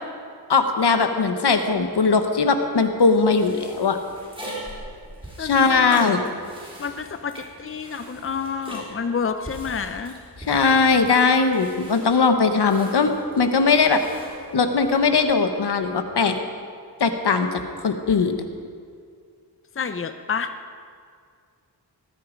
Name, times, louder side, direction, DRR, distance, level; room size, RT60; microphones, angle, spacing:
voice 1, 0.5-4.0 5.4-6.2 10.5-14.0 14.5-16.4 17.0-18.4, left 4 dB, 75° left, 7 dB, 1.3 m, -19 dB
sound 1, 3.1-15.2, right 1 dB, 15° right, 4.2 m, -42 dB
voice 2, 5.4-6.1 6.8-10.2 19.8-20.5, left 6 dB, 35° left, 9 dB, 0.7 m, -29 dB
19.5 x 12.5 x 5.2 m, 2.2 s
wide cardioid pair, 95°, 40 cm